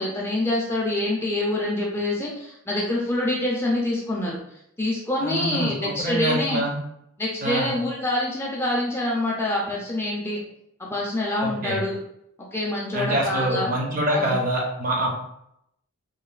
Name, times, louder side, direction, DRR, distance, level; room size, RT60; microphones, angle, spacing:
voice 1, 0.0-4.4 4.8-6.6 7.2-10.4 10.8-12.0 12.5-13.7 14.1-14.4, left 1 dB, 10° left, -3 dB, 0.3 m, -26 dB
voice 2, 5.2-6.8 7.4-7.7 11.4-11.8 12.9-15.1, right 1 dB, 40° right, -1 dB, 0.6 m, -25 dB
3.0 x 2.1 x 2.3 m, 0.76 s
head